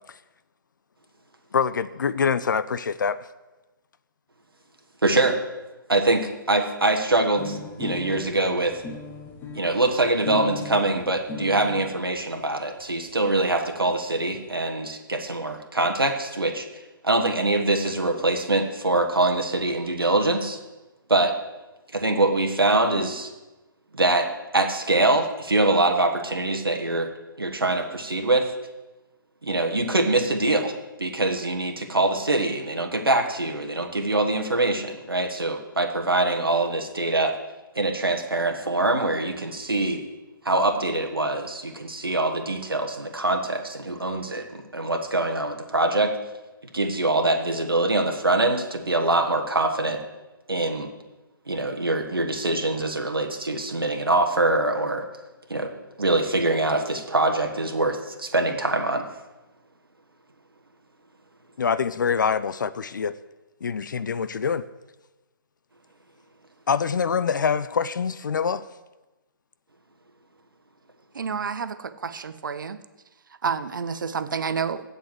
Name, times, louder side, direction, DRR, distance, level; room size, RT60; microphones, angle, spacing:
voice 1, 1.5-3.2 61.6-63.1 63.6-64.6 66.7-68.7, left 6 dB, 60° left, 0.5 m, -25 dB
voice 2, 5.0-5.4 5.9-8.8 9.5-16.6 17.0-20.6 21.1-21.3 21.9-23.3 23.9-24.3 24.5-27.1 27.4-28.5 29.4-30.7 31.0-37.3 37.7-40.0 40.4-46.1 46.7-50.0 50.5-50.9 51.5-55.0 55.5-55.7 56.0-59.0, right 2 dB, 80° right, 1.4 m, -24 dB
sound 1, 7.4-12.0 12.8-12.9 13.1-13.2 13.5-13.6 13.8-14.4, left 3 dB, 15° left, 1.3 m, -37 dB
voice 3, 71.1-72.8 73.4-74.8, right 6 dB, 60° right, 0.8 m, -29 dB
8.3 x 7.7 x 7.8 m
figure-of-eight pair, 135°, 12 cm